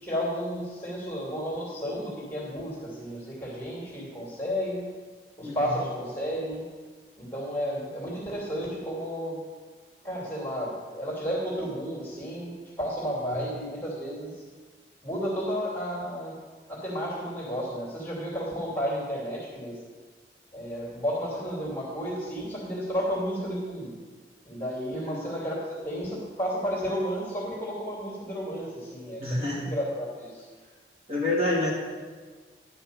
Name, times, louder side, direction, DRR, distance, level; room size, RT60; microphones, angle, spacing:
voice 1, 0.0-4.8 5.4-6.6 7.2-9.4 10.0-14.3 15.0-16.4 16.7-19.8 20.5-23.9 24.4-30.5, equal, 10° left, -5 dB, 2.8 m, -32 dB
voice 2, 29.2-29.7 31.1-31.7, left 1 dB, 35° right, -5 dB, 2.4 m, -27 dB
11.0 x 5.8 x 6.8 m, 1.4 s
head